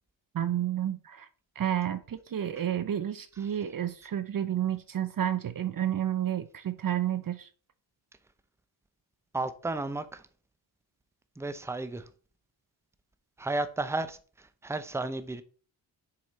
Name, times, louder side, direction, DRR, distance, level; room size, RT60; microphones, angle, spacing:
voice 1, 0.3-1.3 1.6-7.5, right 10 dB, 45° right, 0.6 m, -30 dB
voice 2, 9.3-10.2 11.4-12.1 13.4-15.4, right 2 dB, 5° right, 0.7 m, -33 dB
6.7 x 4.9 x 4.1 m
cardioid pair, 65°, 46 cm